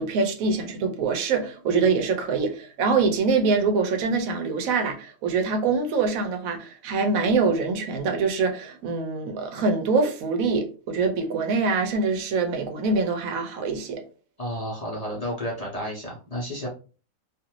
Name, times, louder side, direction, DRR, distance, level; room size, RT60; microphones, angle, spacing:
voice 1, 0.0-14.0, right 4 dB, 80° right, 1.0 m, -24 dB
voice 2, 14.4-16.7, equal, 35° left, 0.7 m, -31 dB
2.6 x 2.5 x 2.9 m
omnidirectional pair, 1.5 m